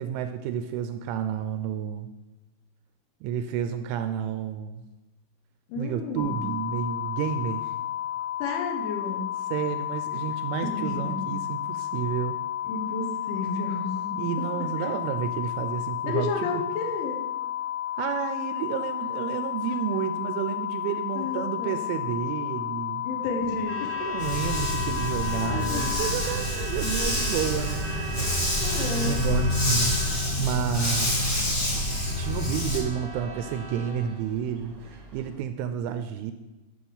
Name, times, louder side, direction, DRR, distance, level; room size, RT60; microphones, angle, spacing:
voice 1, 0.0-2.1 3.2-4.8 5.8-7.7 9.5-12.4 14.2-16.6 18.0-23.0 24.0-28.3 29.0-30.0 30.4-31.5 32.2-36.3, right 8 dB, 85° right, 9 dB, 2.8 m, -31 dB
voice 2, 5.7-6.4 8.4-9.4 10.6-11.3 12.6-14.5 14.8-14.9 16.1-17.2 21.1-21.9 23.0-23.9 25.4-26.0 28.6-29.2, left 3 dB, 75° left, 3 dB, 3.4 m, -32 dB
sound 1, 6.2-26.1, left 12 dB, 60° left, 3.0 m, -32 dB
Truck / Alarm, 23.4-35.4, right 1 dB, 50° right, 1.7 m, -38 dB
Dog, 24.2-32.8, left 1 dB, 40° left, 1.4 m, -27 dB
11.5 x 5.8 x 7.0 m, 1.1 s
omnidirectional pair, 5.8 m